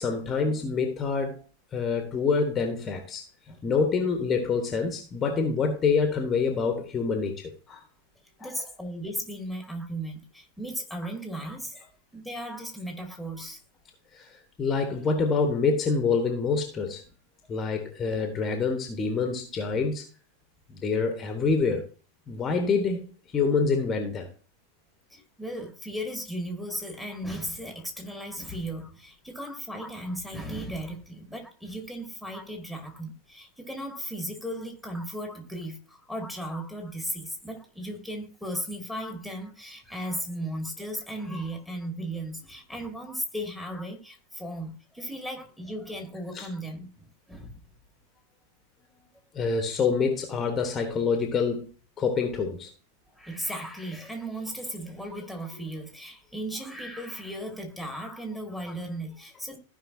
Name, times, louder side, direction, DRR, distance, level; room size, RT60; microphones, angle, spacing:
voice 1, 0.0-1.4 1.7-7.8 8.4-8.6 14.1-17.0 17.5-20.0 20.7-21.9 22.3-23.1 23.3-24.3 46.3-46.5 49.3-51.7 52.0-52.7, left 5 dB, 20° left, 1.3 m, -26 dB
voice 2, 8.4-11.8 12.1-13.6 25.1-47.6 53.1-59.6, right 1 dB, ahead, 2.1 m, -36 dB
15.0 x 5.4 x 2.8 m
figure-of-eight pair, 90°, 0 cm